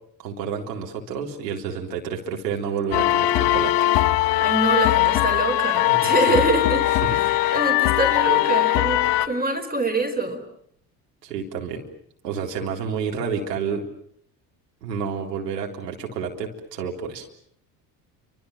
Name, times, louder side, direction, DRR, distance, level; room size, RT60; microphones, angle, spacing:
voice 1, 0.2-3.9 5.9-6.4 7.0-7.5 11.2-11.8 12.2-13.9 14.8-17.3, right 6 dB, 75° right, 1 dB, 3.8 m, -30 dB
sound 1, 2.9-9.3, left 15 dB, 55° left, 1.5 m, -20 dB
voice 2, 4.2-6.9 7.1-10.4, right 2 dB, 20° right, 7 dB, 4.6 m, -25 dB
29.5 x 25.5 x 7.3 m, 0.67 s
figure-of-eight pair, 60°, 49 cm